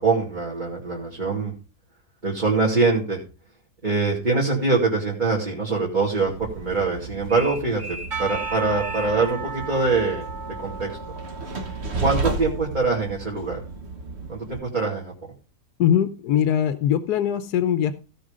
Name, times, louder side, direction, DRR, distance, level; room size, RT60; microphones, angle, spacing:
voice 1, 0.0-1.5 2.2-3.2 3.8-10.3 10.6-10.9 12.0-13.6 14.3-15.1, right 3 dB, 30° right, -3 dB, 2.5 m, -23 dB
Train, 6.3-14.6, right 3 dB, 45° right, 1.4 m, -33 dB
Percussion / Church bell, 8.1-13.1, right 5 dB, 65° right, 3.8 m, -35 dB
voice 2, 15.8-17.9, left 9 dB, 80° left, 11 dB, 1.3 m, -21 dB
16.0 x 5.4 x 5.0 m, 0.34 s
omnidirectional pair, 1.7 m